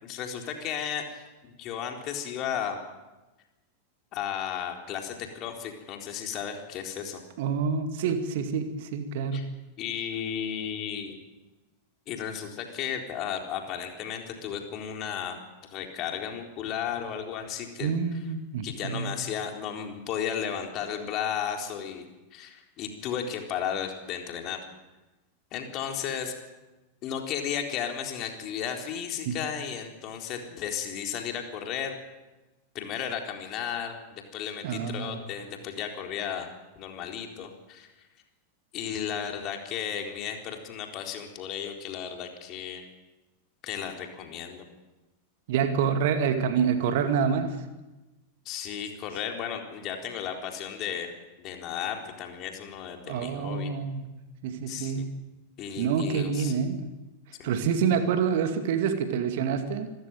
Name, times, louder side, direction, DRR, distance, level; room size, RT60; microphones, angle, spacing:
voice 1, 0.0-2.8 4.1-7.2 9.3-9.4 9.8-11.2 12.1-15.4 15.6-17.9 18.6-22.0 22.3-24.6 25.5-26.3 27.0-32.0 32.7-36.5 36.8-38.1 38.7-42.8 43.6-44.6 48.5-51.1 51.4-53.7 54.7-55.1 55.6-56.5 57.4-57.5, left 8 dB, 35° left, 3 dB, 4.0 m, -34 dB
voice 2, 7.4-9.4 17.8-19.1 29.3-29.4 34.6-35.2 45.5-47.6 53.1-54.1 54.4-55.1 55.8-56.9 57.4-59.9, right 6 dB, 50° right, 8 dB, 2.4 m, -27 dB
27.0 x 15.0 x 9.2 m, 1.1 s
figure-of-eight pair, 90°, 0 cm